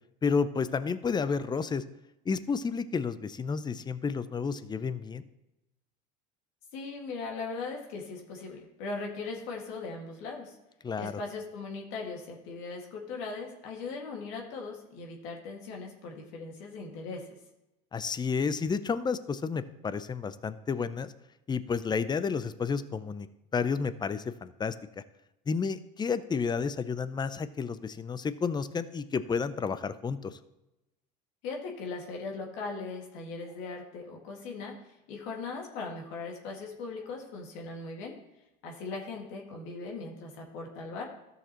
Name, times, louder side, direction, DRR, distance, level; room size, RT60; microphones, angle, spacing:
voice 1, 0.2-1.8 2.3-5.2 10.8-11.1 17.9-21.1 21.5-23.3 23.5-24.7 25.5-30.4, left 5 dB, 20° left, 14 dB, 0.6 m, -31 dB
voice 2, 6.7-10.6 11.0-17.3 31.4-38.2 38.6-41.1, left 4 dB, 65° left, 0 dB, 2.0 m, -39 dB
13.0 x 6.6 x 3.0 m, 0.94 s
hypercardioid pair, 80°, 21 cm